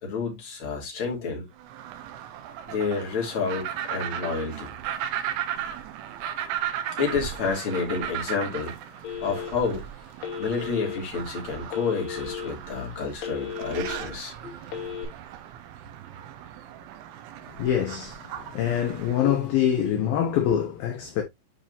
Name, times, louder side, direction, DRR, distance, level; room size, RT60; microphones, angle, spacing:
voice 1, 0.0-1.5 2.7-4.7 7.0-8.7 9.2-9.8 10.4-14.5, left 5 dB, 35° left, 2.9 m, -29 dB
sound 1, 1.6-19.3, right 10 dB, 85° right, 3.2 m, -36 dB
Telephone, 9.0-9.7 10.2-11.0 11.7-12.5 12.9-14.0 14.6-15.1, left 8 dB, 85° left, 5.0 m, -35 dB
voice 2, 17.6-21.2, left 9 dB, 70° left, 2.5 m, -25 dB
10.5 x 4.6 x 2.6 m
omnidirectional pair, 5.4 m